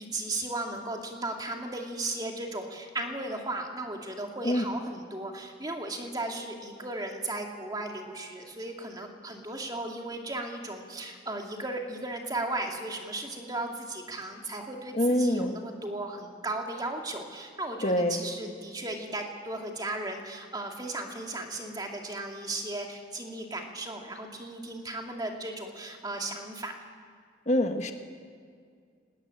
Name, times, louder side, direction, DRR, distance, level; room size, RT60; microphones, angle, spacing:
voice 1, 0.0-26.7, right 2 dB, 20° right, 2 dB, 2.3 m, -36 dB
voice 2, 14.9-15.5 17.8-18.2 27.5-27.9, left 1 dB, 40° left, 5 dB, 1.3 m, -25 dB
19.0 x 18.0 x 9.9 m, 2.2 s
head